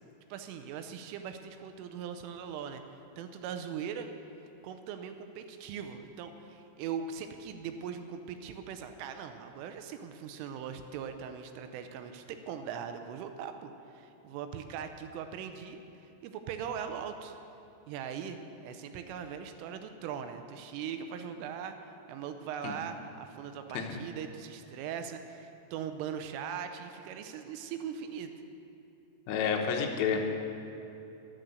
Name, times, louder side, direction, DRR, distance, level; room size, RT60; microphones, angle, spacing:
voice 1, 0.3-2.8 3.2-4.1 4.6-15.8 16.2-17.4 17.9-28.3, right 7 dB, 85° right, 7 dB, 3.2 m, -40 dB
voice 2, 29.3-30.2, left 6 dB, 85° left, 3 dB, 3.6 m, -30 dB
11.5 x 9.6 x 7.8 m, 2.9 s
omnidirectional pair, 5.8 m